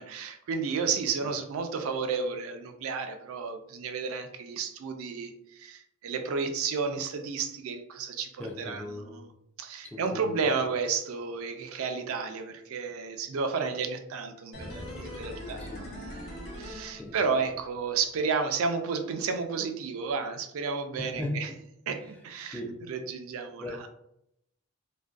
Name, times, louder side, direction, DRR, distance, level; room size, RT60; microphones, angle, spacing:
voice 1, 0.0-9.3 9.6-15.6 16.0-21.5 21.9-22.6 22.9-23.9, right 5 dB, 70° right, 6 dB, 0.3 m, -32 dB
voice 2, 8.4-9.3 9.8-10.5 15.6-15.9 17.0-17.2 21.0-21.4 22.5-22.8 23.6-23.9, left 1 dB, 5° left, -2 dB, 0.3 m, -37 dB
sound 1, 14.5-17.6 17.9-18.0, left 1 dB, 60° left, 0.7 m, -41 dB
2.5 x 2.2 x 2.3 m, 0.77 s
head